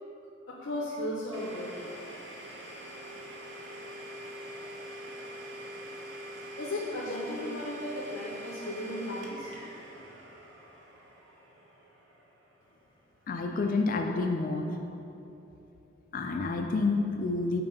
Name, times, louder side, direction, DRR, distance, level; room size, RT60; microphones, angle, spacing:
voice 1, 0.5-1.9 6.6-9.5, left 1 dB, 75° left, -3 dB, 0.7 m, -35 dB
Domestic sounds home sounds, 1.3-13.0, right 1 dB, 70° right, 1.0 m, -44 dB
voice 2, 13.3-14.7 16.1-17.6, left 3 dB, 45° left, 3 dB, 0.3 m, -29 dB
5.9 x 4.3 x 5.2 m, 3.0 s
head